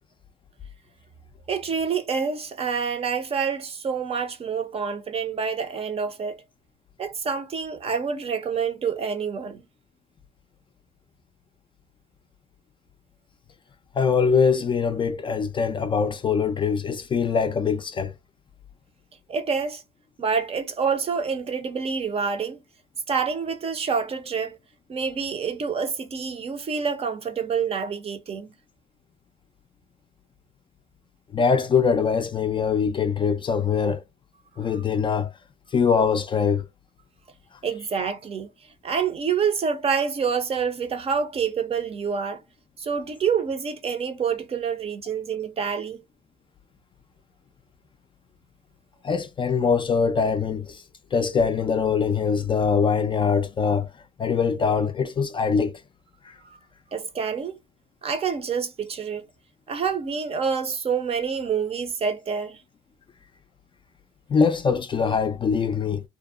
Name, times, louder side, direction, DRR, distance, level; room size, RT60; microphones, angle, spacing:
voice 1, 1.5-6.4 7.0-9.6 19.3-19.8 20.2-22.6 23.1-24.6 24.9-28.5 34.7-34.8 37.6-38.5 38.8-42.4 42.8-46.0 56.4-56.6 56.9-57.6 58.0-59.2 59.7-62.6, right 6 dB, 35° right, 0.5 m, -27 dB
voice 2, 14.0-18.1 31.3-34.0 34.6-35.3 35.7-36.6 49.0-50.8 51.1-53.9 54.2-55.8 56.3-56.4 64.3-66.0, left 6 dB, 30° left, 0.3 m, -23 dB
2.6 x 2.0 x 2.4 m
cardioid pair, 110°, 17 cm